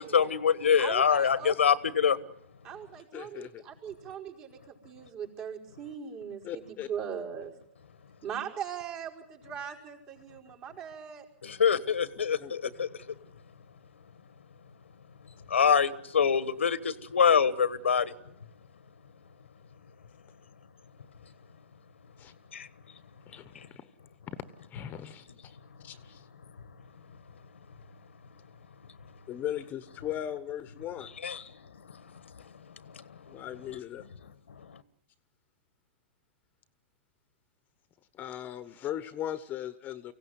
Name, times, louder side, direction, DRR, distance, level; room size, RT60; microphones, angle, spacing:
voice 1, 0.0-2.2 11.4-12.9 15.5-18.1 22.5-22.7 31.2-31.4, left 7 dB, 90° left, 15 dB, 1.4 m, -25 dB
voice 2, 0.8-1.6 2.6-7.5 8.2-11.3, right 8 dB, 40° right, -1 dB, 5.3 m, -40 dB
voice 3, 3.1-3.7 6.4-6.9 12.4-12.5 22.2-22.3 23.3-23.9 24.3-24.4 24.7-25.6 25.8-26.3 29.3-31.1 33.3-34.1 38.1-40.1, left 11 dB, 25° left, 13 dB, 1.1 m, -38 dB
24.5 x 16.5 x 9.5 m, 0.74 s
hypercardioid pair, 125°, 6 cm